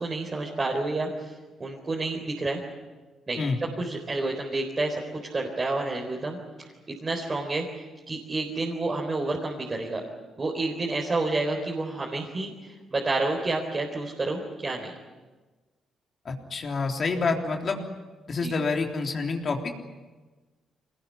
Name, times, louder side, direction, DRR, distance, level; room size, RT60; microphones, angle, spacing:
voice 1, 0.0-1.3 1.6-2.6 3.3-3.4 3.8-6.4 7.0-7.7 8.1-10.0 10.4-14.9 18.4-18.5, right 2 dB, 35° right, -1 dB, 4.1 m, -29 dB
voice 2, 16.3-17.8 18.3-19.7, left 4 dB, 50° left, 2 dB, 3.4 m, -27 dB
23.0 x 19.5 x 9.8 m, 1.3 s
supercardioid pair, 65°, 0 cm